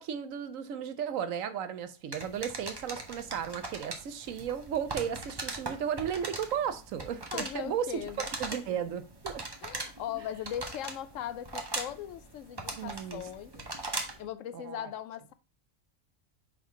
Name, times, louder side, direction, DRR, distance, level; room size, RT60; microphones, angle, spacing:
voice 1, 0.0-8.0 8.4-9.4 12.8-13.2 13.5-13.6 14.5-14.9, right 8 dB, 75° right, 1.1 m, -35 dB
sound 1, 2.1-14.3, right 2 dB, 20° right, 0.8 m, -40 dB
voice 2, 7.3-8.6 9.6-13.6 14.2-15.3, left 10 dB, 75° left, 0.9 m, -39 dB
5.0 x 4.0 x 5.5 m
omnidirectional pair, 1.4 m